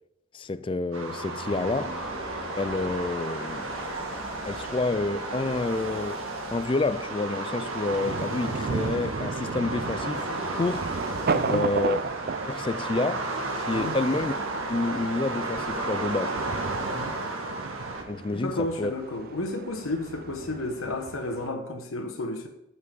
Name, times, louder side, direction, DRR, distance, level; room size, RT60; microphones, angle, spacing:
voice 1, 0.3-2.0 2.6-3.7 4.5-6.2 6.5-10.3 10.5-10.9 11.5-12.0 12.5-14.3 14.7-16.4 18.1-18.9, left 3 dB, 25° left, 0.3 m, -29 dB
sound 1, 0.9-18.0, right 2 dB, 80° right, 1.8 m, -33 dB
sound 2, 1.5-14.6, equal, ahead, 2.2 m, -46 dB
Thunder, 5.3-21.5, right 4 dB, 45° right, 0.4 m, -35 dB
voice 2, 11.3-11.7 13.7-14.0 16.9-17.2 18.3-22.5, left 2 dB, 85° left, 1.2 m, -32 dB
9.4 x 5.9 x 6.8 m
head